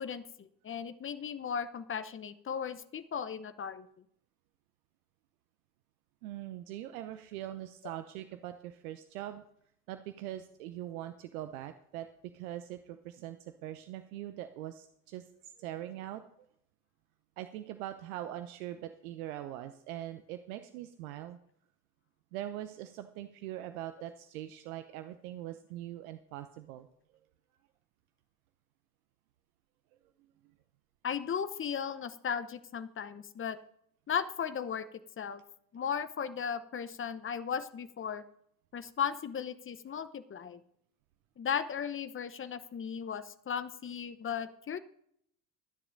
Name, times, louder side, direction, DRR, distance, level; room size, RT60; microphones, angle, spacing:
voice 1, 0.0-3.9 31.0-33.6 34.1-34.9 35.2-35.4 35.7-38.2 38.7-40.6 41.4-44.8, left 7 dB, 25° left, 13 dB, 0.9 m, -36 dB
voice 2, 6.2-9.4 9.9-16.2 17.4-21.4 22.3-26.9, right 13 dB, 65° right, 10 dB, 0.8 m, -42 dB
25.0 x 10.0 x 2.6 m, 0.71 s
figure-of-eight pair, 60°, 46 cm